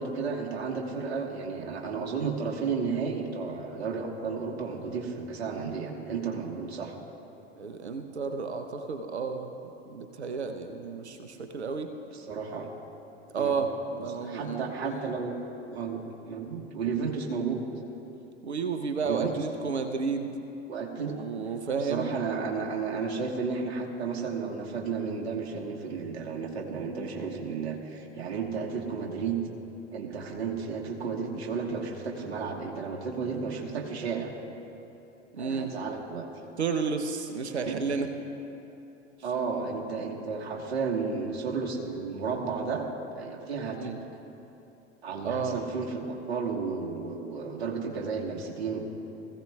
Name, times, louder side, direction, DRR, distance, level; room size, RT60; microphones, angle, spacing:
voice 1, 0.0-6.9 12.1-12.7 13.4-13.5 14.0-15.4 15.7-17.6 19.0-19.4 20.7-21.2 21.8-29.4 29.9-34.3 35.4-36.3 37.6-37.8 39.2-42.9 43.1-43.9 45.0-48.9, right 5 dB, 70° right, 0 dB, 1.5 m, -33 dB
voice 2, 7.6-9.5 9.9-11.9 13.3-15.1 18.4-20.3 21.0-22.2 35.3-35.7 36.6-38.1 43.7-44.0 45.2-45.6, right 5 dB, 85° right, 6 dB, 0.8 m, -32 dB
20.0 x 15.0 x 2.3 m, 3.0 s
figure-of-eight pair, 80°, 32 cm